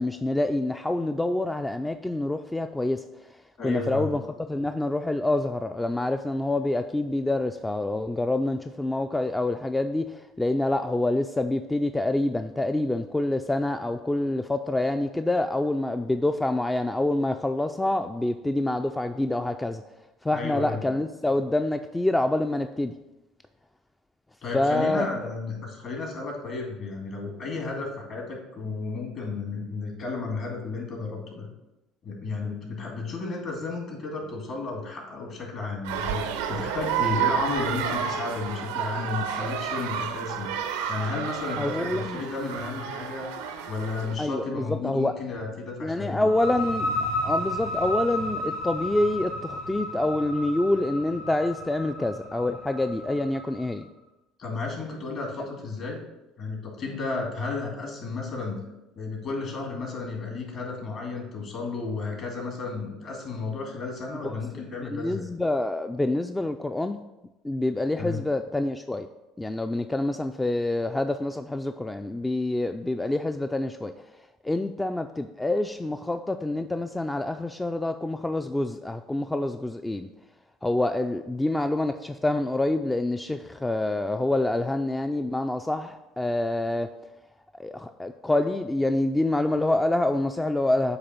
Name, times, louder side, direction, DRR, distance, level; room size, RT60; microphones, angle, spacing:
voice 1, 0.0-3.0 3.6-4.2 4.5-19.8 20.2-22.9 24.5-25.3 41.6-42.2 44.2-45.1 45.8-53.9 64.2-64.4 64.9-67.0 67.4-69.1 69.4-73.9 74.4-80.1 80.6-86.9 87.6-91.0, left 2 dB, 10° left, 7 dB, 0.4 m, -26 dB
voice 2, 3.6-4.1 20.3-20.8 24.4-31.5 32.0-40.5 40.9-43.2 43.7-46.3 54.4-56.0 56.4-58.6 59.0-65.3 68.0-68.2, left 3 dB, 55° left, 0 dB, 2.5 m, -33 dB
sound 1, 35.8-44.1, right 8 dB, 85° right, 0.6 m, -30 dB
sound 2, 46.2-53.7, left 1 dB, 85° left, 2.2 m, -32 dB
8.0 x 3.0 x 5.8 m, 0.96 s
hypercardioid pair, 70°, 0 cm